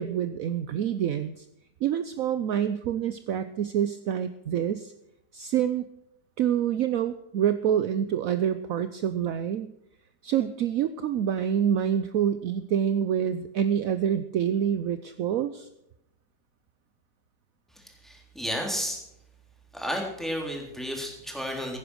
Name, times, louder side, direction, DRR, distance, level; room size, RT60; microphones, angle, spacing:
voice 1, 0.0-1.4 1.8-4.9 5.3-5.8 6.4-9.7 10.2-15.7, right 9 dB, 65° right, 11 dB, 0.8 m, -27 dB
voice 2, 17.8-19.0 19.7-21.8, equal, ahead, 0 dB, 3.4 m, -32 dB
16.0 x 10.0 x 6.3 m, 0.81 s
omnidirectional pair, 2.1 m